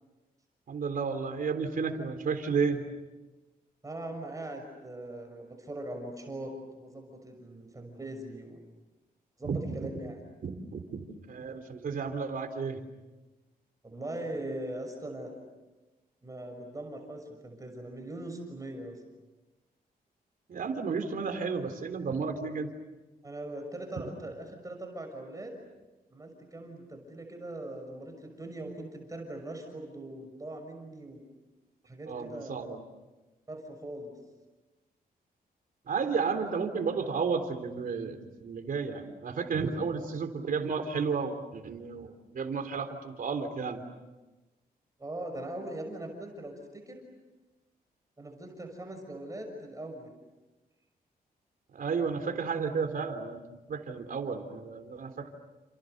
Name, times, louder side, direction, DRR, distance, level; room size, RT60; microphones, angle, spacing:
voice 1, 0.7-2.8 9.4-9.9 10.4-12.8 20.5-22.7 32.1-32.8 35.9-43.8 51.7-53.4 53.7-55.3, right 5 dB, 60° right, 6 dB, 3.6 m, -32 dB
voice 2, 3.8-8.6 9.4-10.2 13.8-15.3 16.2-19.0 23.2-25.6 26.1-31.2 31.8-32.5 33.5-34.1 45.0-47.1 48.2-50.1, right 1 dB, 20° right, 4 dB, 6.2 m, -41 dB
30.0 x 28.5 x 6.7 m, 1.1 s
cardioid pair, 110°, 16 cm